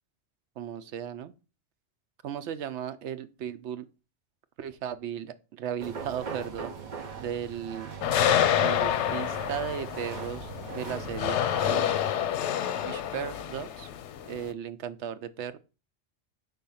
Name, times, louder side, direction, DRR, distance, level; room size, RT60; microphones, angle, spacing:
voice 1, 0.6-1.3 2.2-3.9 4.6-6.7 7.2-7.9 8.6-12.0 12.8-13.9 14.2-15.6, right 9 dB, 85° right, 0.9 m, -36 dB
sound 1, 5.8-11.7, right 5 dB, 45° right, 0.9 m, -40 dB
sound 2, 8.0-14.5, left 10 dB, 90° left, 0.9 m, -28 dB
4.9 x 3.9 x 5.5 m
omnidirectional pair, 1.1 m